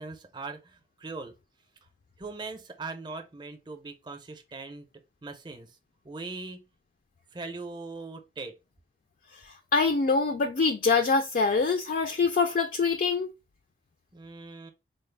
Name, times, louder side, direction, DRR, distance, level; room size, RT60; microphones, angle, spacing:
voice 1, 0.0-1.3 2.2-4.9 5.2-5.7 6.0-6.7 7.3-8.6 14.1-14.7, right 3 dB, 25° right, 0.6 m, -40 dB
voice 2, 9.3-13.3, left 4 dB, 50° left, 0.3 m, -25 dB
4.0 x 2.0 x 3.2 m
head